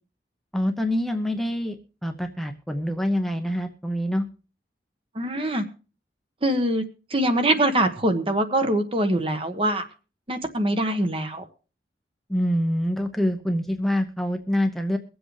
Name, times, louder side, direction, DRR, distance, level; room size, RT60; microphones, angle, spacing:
voice 1, 0.5-4.3 12.3-15.0, equal, ahead, 4 dB, 0.8 m, -25 dB
voice 2, 5.1-5.6 6.4-6.8 7.1-9.8 10.3-11.5, right 1 dB, 30° right, 8 dB, 1.3 m, -23 dB
23.0 x 7.8 x 3.2 m, 0.34 s
head